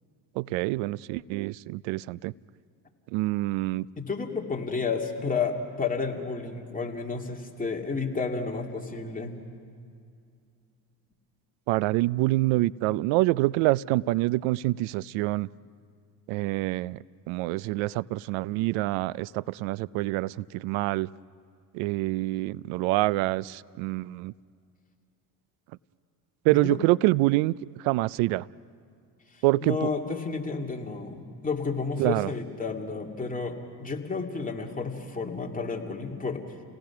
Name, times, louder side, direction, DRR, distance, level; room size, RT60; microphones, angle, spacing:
voice 1, 0.4-2.3 3.1-3.9 11.7-15.5 16.3-17.0 17.3-21.1 21.7-24.3 26.4-27.5 27.8-28.4 29.4-29.8 32.0-32.3, right 19 dB, 80° right, 22 dB, 0.5 m, -26 dB
voice 2, 4.0-9.4 26.5-26.8 29.3-36.4, left 4 dB, 15° left, 0 dB, 2.5 m, -31 dB
30.0 x 18.0 x 5.9 m, 2.3 s
supercardioid pair, 95°, 47 cm